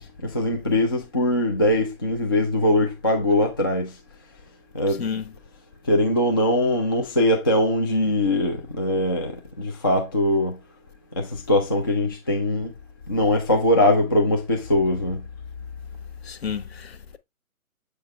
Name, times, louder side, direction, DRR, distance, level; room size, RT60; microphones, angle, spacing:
voice 1, 0.2-3.9 4.7-5.0 5.9-10.6 11.2-12.7 13.1-15.2, left 1 dB, 15° left, 0.4 m, -21 dB
voice 2, 16.2-17.2, left 7 dB, 45° left, 1.0 m, -31 dB
7.5 x 4.5 x 3.2 m
figure-of-eight pair, 140°, 42 cm